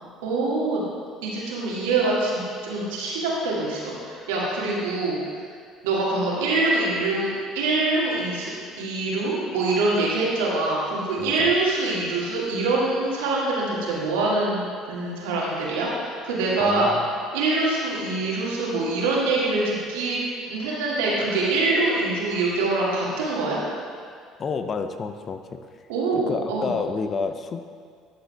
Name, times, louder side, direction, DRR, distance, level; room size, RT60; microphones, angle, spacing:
voice 1, 0.2-0.8 1.2-5.2 5.8-7.3 7.5-8.5 8.8-16.9 17.3-20.2 20.5-23.6 25.9-26.7, right 2 dB, 75° right, -5 dB, 1.7 m, -24 dB
voice 2, 11.2-11.5 16.6-17.1 24.4-25.6 26.1-27.6, left 5 dB, 40° left, 8 dB, 0.5 m, -29 dB
12.5 x 6.8 x 2.3 m, 2.1 s
hypercardioid pair, 60°, 0 cm